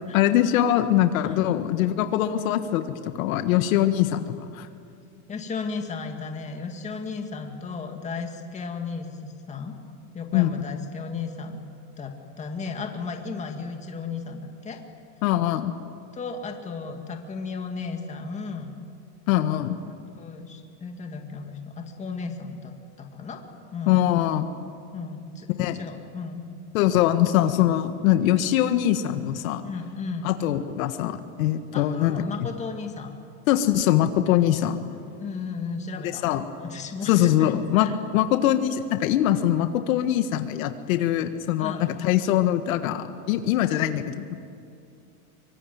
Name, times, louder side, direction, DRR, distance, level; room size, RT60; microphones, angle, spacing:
voice 1, 0.1-2.8 3.1-4.7 10.3-10.5 15.2-15.7 19.3-19.8 23.9-24.5 25.6-25.8 26.7-29.6 30.2-32.2 33.5-34.8 36.2-36.4 37.1-37.9 38.1-44.3, left 12 dB, 65° left, 9 dB, 1.6 m, -22 dB
voice 2, 5.3-9.8 10.1-11.6 12.0-14.8 16.1-18.7 19.9-23.5 23.7-24.1 24.9-26.5 29.6-30.3 31.7-33.1 35.2-36.2 36.6-37.5 37.8-37.9 41.6-41.9, left 4 dB, 15° left, 4 dB, 2.2 m, -35 dB
24.0 x 24.0 x 9.3 m, 2.4 s
supercardioid pair, 150°, 45 cm